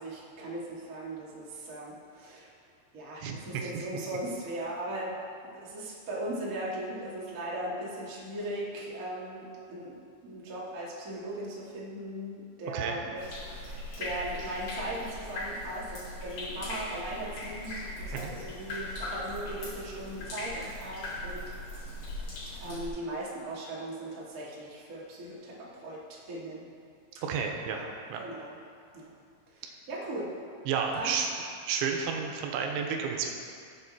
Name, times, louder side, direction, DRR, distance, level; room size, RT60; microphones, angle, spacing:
voice 1, 0.0-2.5 2.9-5.2 5.4-13.2 13.5-22.0 22.5-26.7 27.1-27.2 27.6-27.9 28.2-28.5 28.9-29.1 29.5-30.3 30.9-31.2, right 1 dB, 35° right, -6 dB, 1.3 m, -38 dB
voice 2, 3.2-3.9 12.7-13.0 18.1-18.3 27.2-27.8 28.1-28.2 30.7-31.3 31.7-33.3, right 6 dB, 90° right, 2 dB, 3.3 m, -31 dB
sound 1, 13.2-22.9, left 1 dB, 55° left, 3.4 m, -39 dB
17.0 x 7.5 x 4.3 m, 2.3 s
omnidirectional pair, 5.3 m